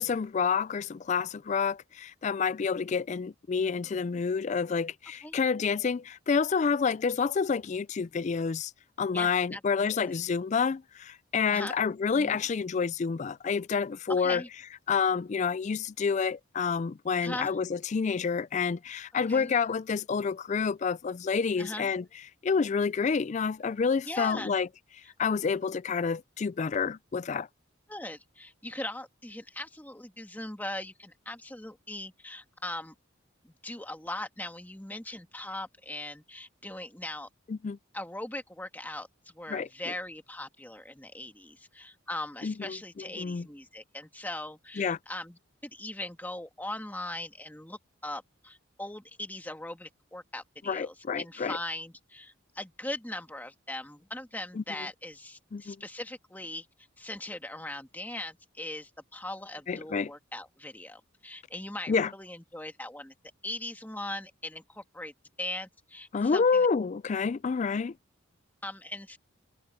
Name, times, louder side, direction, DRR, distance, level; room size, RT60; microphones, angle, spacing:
voice 1, 0.0-8.7 9.0-14.4 14.9-22.0 22.4-24.7 25.2-27.5 37.5-37.8 39.5-39.7 42.4-42.8 43.2-43.5 44.8-45.0 50.7-51.6 54.6-54.7 55.5-55.8 59.7-60.1 61.9-62.1 66.1-67.9, left 5 dB, 35° left, 0.3 m, -28 dB
voice 2, 9.1-10.2 11.5-11.8 12.2-12.4 14.1-14.5 17.2-17.6 19.3-19.5 21.6-21.9 24.0-24.6 25.0-25.1 27.9-32.9 33.4-37.3 37.9-56.7 57.0-63.1 63.4-65.1 65.4-66.7 68.6-69.2, left 1 dB, 10° left, 1.6 m, -40 dB
head